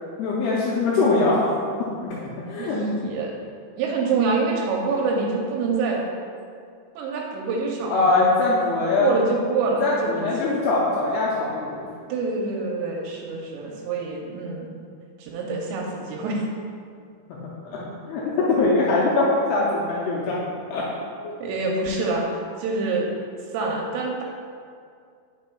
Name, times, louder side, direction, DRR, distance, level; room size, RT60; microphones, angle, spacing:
voice 1, 0.2-1.6 2.4-2.8 7.9-9.2 9.7-11.9 17.6-20.4 20.7-21.0, left 3 dB, 85° left, -6 dB, 2.3 m, -22 dB
voice 2, 2.6-3.3 3.7-6.0 7.0-8.2 9.0-10.5 12.1-14.8 15.2-16.4 21.4-23.1 23.5-24.2, right 3 dB, 80° right, -1 dB, 2.7 m, -26 dB
8.9 x 5.6 x 2.3 m, 2.3 s
omnidirectional pair, 5.2 m